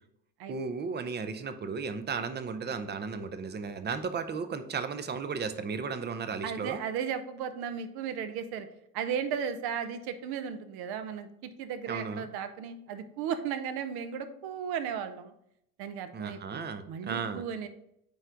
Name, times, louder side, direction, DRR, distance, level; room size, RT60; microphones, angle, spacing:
voice 1, 0.5-6.8 11.9-12.3 16.1-17.4, right 5 dB, 25° right, 11 dB, 0.6 m, -35 dB
voice 2, 6.4-8.7 8.9-15.3 15.8-17.7, right 7 dB, 55° right, 10 dB, 0.8 m, -35 dB
9.0 x 3.4 x 3.8 m, 0.76 s
hypercardioid pair, 75°, 46 cm